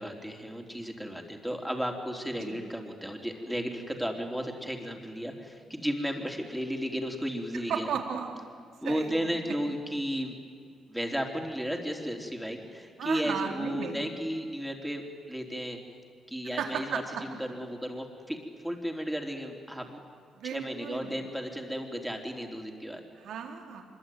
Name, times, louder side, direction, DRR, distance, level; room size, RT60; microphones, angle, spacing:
voice 1, 0.0-7.9 8.8-10.4 10.9-15.8 16.3-18.4 18.6-20.0 20.5-23.0, equal, ahead, 2 dB, 3.7 m, -34 dB
voice 2, 7.5-8.4 8.8-9.4 13.0-14.1 16.6-17.2 20.3-21.1 23.2-23.9, right 7 dB, 75° right, 2 dB, 3.8 m, -35 dB
24.5 x 22.5 x 9.5 m, 2.2 s
cardioid pair, 90°, 0 cm